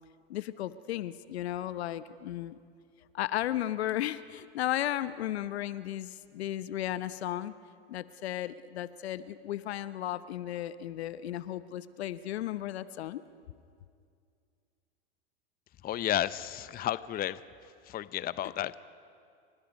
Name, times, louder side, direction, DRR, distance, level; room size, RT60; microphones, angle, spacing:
voice 1, 0.3-2.6 3.1-7.5 7.9-13.2, left 13 dB, 75° left, 14 dB, 0.9 m, -34 dB
voice 2, 15.8-17.4 17.9-18.8, left 12 dB, 30° left, 16 dB, 0.7 m, -32 dB
30.0 x 25.0 x 5.3 m, 2.3 s
hypercardioid pair, 90°, 32 cm